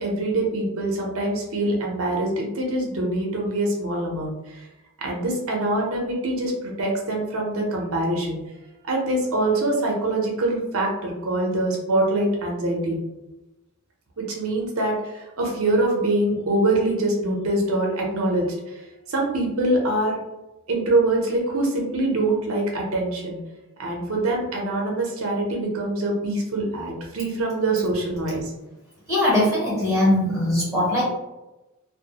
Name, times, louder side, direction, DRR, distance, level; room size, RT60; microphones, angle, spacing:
voice 1, 0.0-4.6 5.0-8.4 8.8-13.0 14.2-18.8 19.1-20.2 20.7-23.4 23.8-28.5, right 2 dB, 70° right, -1 dB, 0.6 m, -24 dB
voice 2, 29.1-31.0, left 1 dB, 5° right, -7 dB, 0.6 m, -20 dB
2.2 x 2.0 x 2.8 m, 1.0 s
head